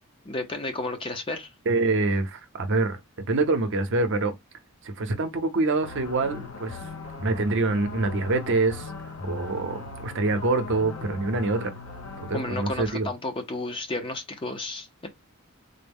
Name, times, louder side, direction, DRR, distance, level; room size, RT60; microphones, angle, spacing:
voice 1, 0.2-1.5 12.3-15.1, left 2 dB, 25° left, 0.5 m, -32 dB
voice 2, 1.7-3.0 3.3-4.3 4.8-6.8 7.2-8.9 9.2-11.7 12.2-13.1, right 3 dB, 55° right, 0.7 m, -25 dB
sound 1, 5.8-12.9, left 3 dB, 65° left, 0.7 m, -38 dB
3.8 x 2.1 x 3.5 m
head